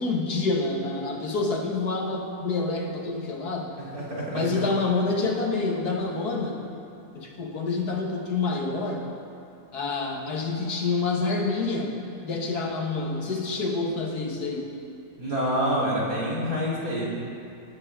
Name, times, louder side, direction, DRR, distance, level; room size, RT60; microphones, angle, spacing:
voice 1, 0.0-3.8 4.3-6.6 7.1-9.1 9.7-11.9 12.2-14.7 16.8-17.1, left 3 dB, 75° left, 1 dB, 2.0 m, -27 dB
voice 2, 3.9-4.7 15.2-17.1, equal, 60° right, -6 dB, 3.6 m, -27 dB
19.0 x 12.0 x 3.7 m, 2.5 s
omnidirectional pair, 1.7 m